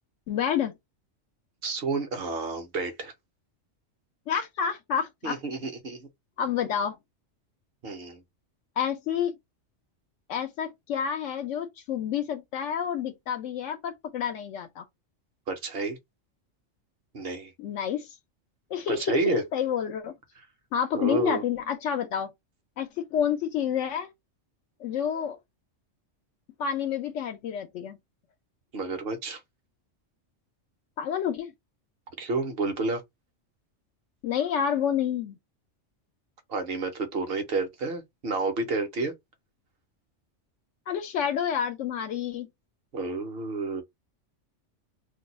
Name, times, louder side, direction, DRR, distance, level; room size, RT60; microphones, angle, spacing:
voice 1, 0.3-0.7 4.3-5.4 6.4-7.0 8.8-9.3 10.3-14.8 17.6-18.1 18.7-20.1 20.7-22.3 22.8-24.1 24.8-25.4 26.6-28.0 31.0-31.5 34.2-35.4 40.9-42.5, left 8 dB, 80° left, 0.9 m, -29 dB
voice 2, 1.6-3.1 5.2-6.1 7.8-8.2 15.5-16.0 17.1-17.5 18.9-19.4 20.9-21.4 28.7-29.4 32.2-33.0 36.5-39.1 42.9-43.8, right 3 dB, 55° right, 0.9 m, -30 dB
2.6 x 2.2 x 4.0 m
omnidirectional pair, 1.3 m